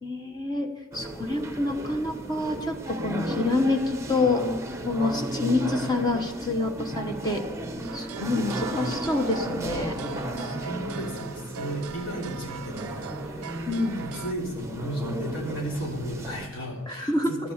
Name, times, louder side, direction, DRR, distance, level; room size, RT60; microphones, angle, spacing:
voice 1, 0.0-4.4 4.8-7.4 7.9-10.0 13.7-14.0 16.9-17.5, left 2 dB, 20° left, 4 dB, 1.0 m, -27 dB
sound 1, 0.9-16.5, right 1 dB, 15° right, 0.8 m, -34 dB
sound 2, 7.8-14.3, right 6 dB, 85° right, 0.4 m, -40 dB
voice 2, 10.0-13.5 14.0-17.5, right 1 dB, 60° left, -2 dB, 3.3 m, -34 dB
12.0 x 8.4 x 6.6 m, 1.2 s
head